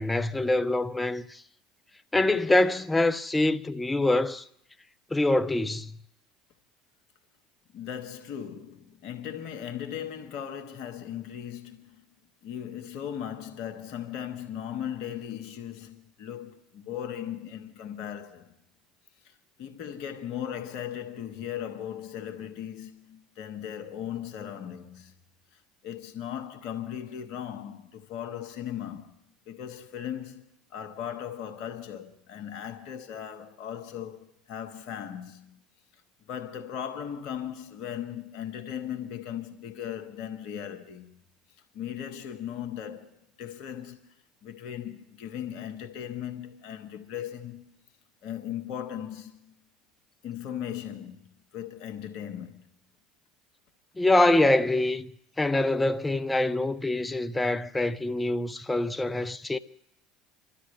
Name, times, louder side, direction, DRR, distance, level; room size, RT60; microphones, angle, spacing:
voice 1, 0.0-1.4 2.1-4.4 5.1-5.9 54.0-55.1 55.4-59.6, left 2 dB, 15° left, 0.9 m, -25 dB
voice 2, 7.7-12.1 12.4-18.5 19.2-25.2 25.5-29.2 29.5-30.4 30.7-35.7 36.3-41.1 41.7-44.1 44.4-47.7 48.2-49.6 50.2-51.2 51.5-52.7, left 9 dB, 65° left, 1.8 m, -38 dB
29.5 x 12.5 x 3.3 m
hypercardioid pair, 75°, 0 cm